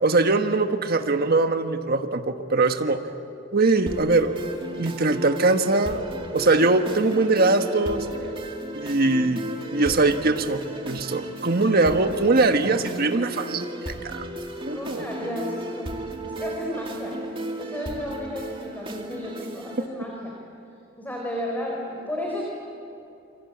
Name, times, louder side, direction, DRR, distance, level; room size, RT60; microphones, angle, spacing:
voice 1, 0.0-3.0 3.5-4.3 4.8-6.0 6.3-8.1 8.7-9.4 9.7-13.7 14.1-14.2 14.7-15.1, right 3 dB, 50° right, 6 dB, 1.4 m, -21 dB
sound 1, 3.9-19.9, right 1 dB, 30° right, 2.3 m, -35 dB
voice 2, 14.7-15.9 16.2-17.2 17.6-20.4 21.0-22.4, left 1 dB, 10° left, -2 dB, 4.2 m, -33 dB
28.0 x 24.5 x 8.6 m, 2.7 s
head